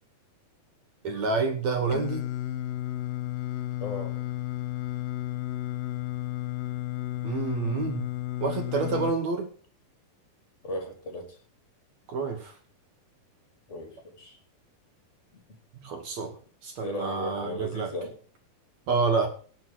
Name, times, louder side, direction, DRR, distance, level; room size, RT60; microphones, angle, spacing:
voice 1, 1.0-2.3 7.2-8.0 8.4-9.5 12.1-12.5 15.8-16.3 16.6-17.9 18.9-19.3, right 4 dB, 60° right, 5 dB, 2.2 m, -28 dB
Singing, 1.9-9.1, left 15 dB, 80° left, 2.5 m, -33 dB
voice 2, 3.8-4.2 10.6-11.3 13.7-14.4 15.3-15.4 16.8-18.2, left 1 dB, 20° left, 4 dB, 2.8 m, -36 dB
17.0 x 6.1 x 6.1 m, 0.42 s
omnidirectional pair, 4.4 m